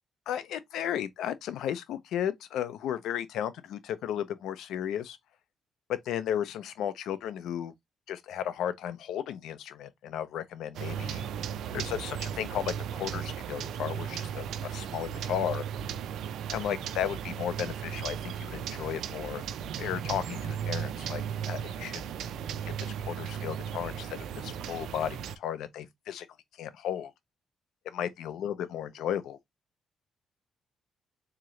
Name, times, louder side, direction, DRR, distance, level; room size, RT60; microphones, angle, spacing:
voice 1, 0.3-5.2 5.9-7.7 8.1-11.2 11.7-15.6 16.5-19.4 19.8-22.0 22.8-26.3 26.6-27.1 27.9-29.4, left 10 dB, 90° left, 0.5 m, -34 dB
sound 1, 10.7-25.4, right 8 dB, 85° right, 0.4 m, -36 dB
3.6 x 2.9 x 3.0 m
cardioid pair, 110°, 0 cm